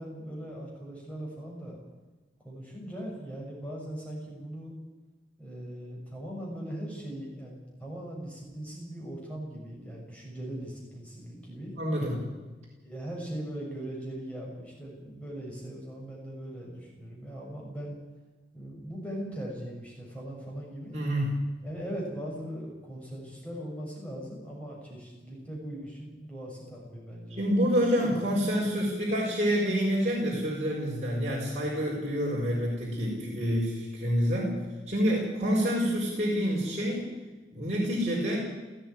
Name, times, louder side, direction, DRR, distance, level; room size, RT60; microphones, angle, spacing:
voice 1, 0.0-1.8 2.4-4.8 5.4-11.7 12.8-18.0 18.5-21.0 21.6-27.5, right 1 dB, 5° left, -3 dB, 6.4 m, -40 dB
voice 2, 11.7-12.2 20.9-21.4 27.3-34.6 34.9-37.1 37.5-38.4, equal, 40° right, -4 dB, 5.0 m, -27 dB
18.0 x 15.0 x 9.7 m, 1.2 s
head